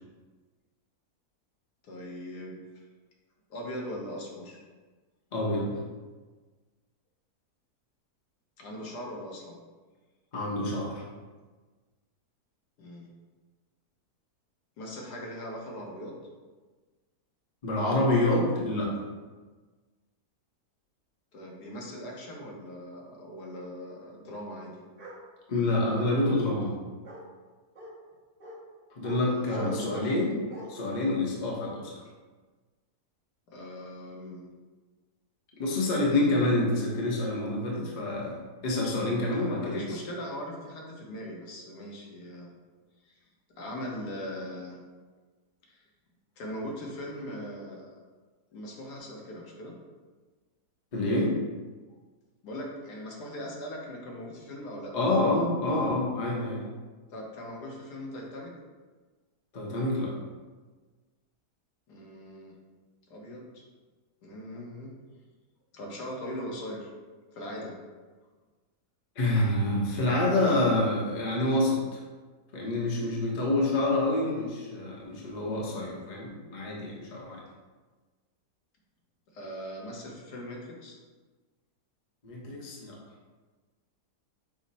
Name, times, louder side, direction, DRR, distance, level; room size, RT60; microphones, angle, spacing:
voice 1, 1.8-2.8 3.5-4.6 8.6-9.6 12.8-13.1 14.8-16.1 21.3-24.7 29.2-30.1 33.5-34.5 39.6-42.5 43.0-43.2 43.6-44.8 45.6-45.8 46.4-47.9 48.5-49.7 52.4-54.9 57.1-58.5 61.9-62.5 63.1-63.6 64.2-64.9 65.7-66.9 67.3-67.7 79.3-81.0, equal, 75° left, -2 dB, 1.4 m, -40 dB
voice 2, 5.3-5.7 10.3-11.0 17.6-18.9 25.5-26.8 28.9-30.3 30.7-31.9 35.6-40.0 50.9-51.3 54.9-56.6 59.5-60.1 69.2-72.0 72.5-77.4 82.2-83.0, left 2 dB, 35° left, -3 dB, 0.8 m, -27 dB
Bark, 25.0-25.2 25.8-26.4 27.0-27.2 27.7-27.9 28.4-28.6 29.0-29.2 29.5-30.2 30.5-30.7, equal, 35° right, 0.9 m, -44 dB
6.2 x 2.1 x 4.0 m, 1.3 s
omnidirectional pair, 1.7 m